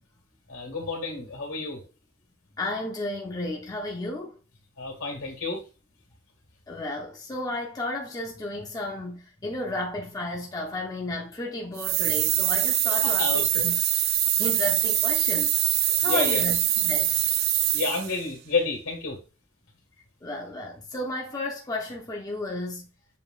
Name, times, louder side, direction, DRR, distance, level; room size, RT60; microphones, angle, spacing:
voice 1, 0.5-1.8 4.8-5.6 13.0-13.6 15.9-16.4 17.7-19.2, left 3 dB, 85° left, 1.8 m, -30 dB
voice 2, 2.6-4.3 6.7-13.7 14.4-15.6 16.0-16.6 16.8-17.2 20.2-22.9, left 1 dB, 15° left, 0.5 m, -33 dB
sound 1, 11.8-18.2, right 12 dB, 45° right, 0.3 m, -24 dB
6.9 x 2.8 x 2.4 m
head